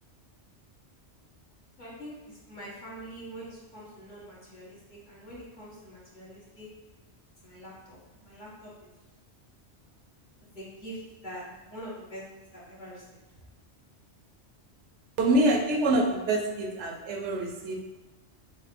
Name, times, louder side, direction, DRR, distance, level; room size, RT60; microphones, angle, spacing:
voice 1, 1.8-6.7 7.4-8.9 10.5-12.2 12.5-13.2, equal, 45° left, -7 dB, 1.3 m, -44 dB
voice 2, 15.2-17.8, right 1 dB, 80° right, 2 dB, 0.9 m, -25 dB
3.8 x 2.0 x 4.0 m, 1.1 s
omnidirectional pair, 1.2 m